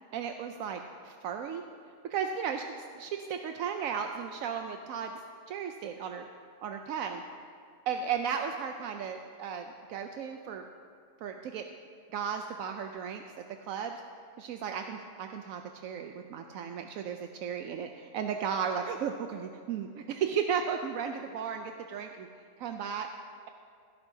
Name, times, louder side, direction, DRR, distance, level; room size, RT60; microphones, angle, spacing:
voice 1, 0.1-1.6 2.1-2.6 3.0-5.1 5.5-6.3 6.6-7.2 7.9-10.6 11.2-11.6 12.1-13.2 13.7-14.0 14.4-22.3 22.6-23.1, right 7 dB, 80° right, 5 dB, 1.0 m, -35 dB
16.5 x 12.5 x 2.7 m, 2.4 s
omnidirectional pair, 1.4 m